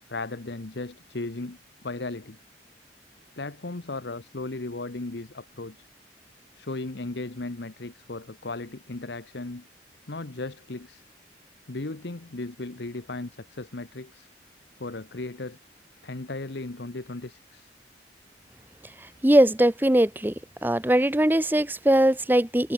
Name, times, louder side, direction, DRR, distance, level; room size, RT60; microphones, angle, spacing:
voice 1, 0.0-2.4 3.4-5.9 6.5-9.6 10.1-11.0 11.7-14.3 14.8-15.6 16.0-17.7, left 2 dB, 65° left, 1.1 m, -36 dB
voice 2, 19.2-20.3 20.6-22.7, right 1 dB, 10° right, 0.7 m, -20 dB
head